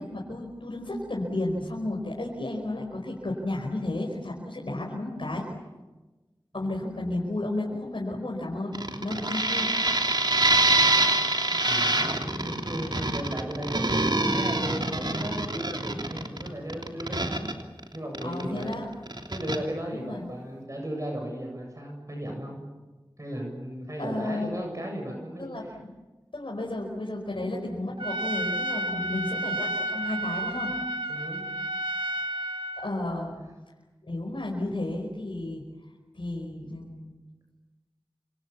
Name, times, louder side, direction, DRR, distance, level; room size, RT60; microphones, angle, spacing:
voice 1, 0.0-5.5 6.5-9.7 13.8-13.9 18.2-18.9 19.9-20.3 24.0-24.5 25.4-25.9 26.3-30.7 32.8-33.4 34.0-35.6 36.1-37.1, left 2 dB, 80° left, -2 dB, 5.1 m, -33 dB
sound 1, 8.7-18.7 19.1-19.6, right 2 dB, 55° right, 3.1 m, -25 dB
voice 2, 11.5-17.5 17.9-18.8 19.3-22.6 23.2-25.8 27.4-27.5 28.9-29.3 31.1-31.5, equal, 40° right, 1 dB, 8.0 m, -36 dB
Trumpet, 28.0-32.9, right 1 dB, 80° right, 2.3 m, -31 dB
28.5 x 27.0 x 7.3 m, 1.2 s
wide cardioid pair, 40°, 9 cm